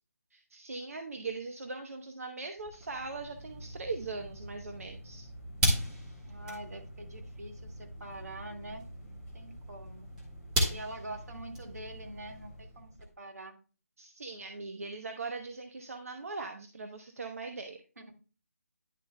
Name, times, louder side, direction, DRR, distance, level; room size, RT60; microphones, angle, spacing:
voice 1, 0.3-5.3 14.0-17.8, right 3 dB, 65° right, 5 dB, 0.9 m, -40 dB
sound 1, 2.6-13.1, equal, 10° right, 1.3 m, -37 dB
voice 2, 6.3-10.1 10.7-13.6 18.0-18.2, right 1 dB, 90° right, 4 dB, 1.9 m, -45 dB
10.5 x 7.2 x 2.2 m, 0.35 s
hypercardioid pair, 170°, 8 cm